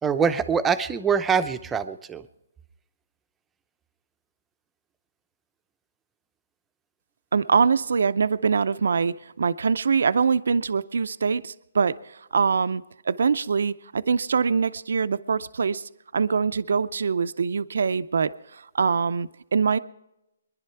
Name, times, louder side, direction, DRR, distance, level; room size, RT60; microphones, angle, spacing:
voice 1, 0.0-2.3, right 6 dB, 10° right, 0.6 m, -24 dB
voice 2, 7.3-19.8, right 5 dB, 75° right, 0.5 m, -24 dB
23.0 x 11.0 x 4.5 m
hypercardioid pair, 150°, 0 cm